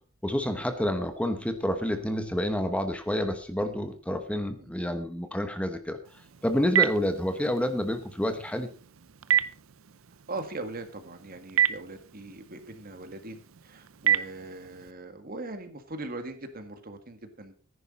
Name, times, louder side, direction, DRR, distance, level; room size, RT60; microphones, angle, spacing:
voice 1, 0.2-6.0 6.4-8.7, left 1 dB, 5° left, 7 dB, 1.0 m, -29 dB
Telephone, 6.0-14.9, right 9 dB, 75° right, 0.6 m, -31 dB
voice 2, 10.3-17.6, right 2 dB, 45° right, 8 dB, 1.7 m, -40 dB
14.5 x 10.5 x 4.2 m, 0.39 s
head